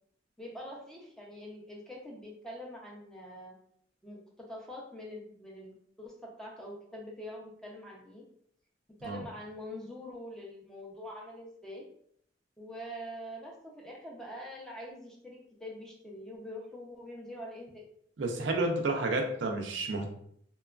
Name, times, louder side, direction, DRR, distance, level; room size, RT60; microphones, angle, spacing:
voice 1, 0.4-3.5 4.0-8.2 9.0-11.8 12.6-17.8, equal, 5° left, -2 dB, 0.5 m, -44 dB
voice 2, 18.2-20.1, right 2 dB, 80° right, 3 dB, 0.5 m, -30 dB
2.9 x 2.3 x 2.3 m, 0.66 s
head